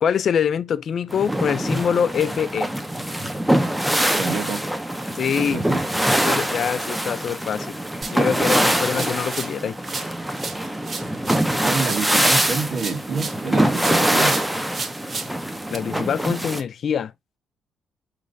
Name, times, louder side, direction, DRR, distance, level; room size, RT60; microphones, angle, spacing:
voice 1, 0.0-2.7 5.1-5.6 6.2-7.8 8.1-9.8 15.7-17.1, left 7 dB, 55° left, 0.3 m, -24 dB
sound 1, 1.1-16.6, right 1 dB, 5° right, 0.7 m, -23 dB
voice 2, 4.2-4.6 5.4-5.8 11.6-14.4, right 5 dB, 60° right, 1.6 m, -27 dB
sound 2, 8.0-9.6 9.8-13.5 13.8-15.8, right 4 dB, 40° right, 0.9 m, -34 dB
5.0 x 3.2 x 2.5 m
cardioid pair, 90°, 0 cm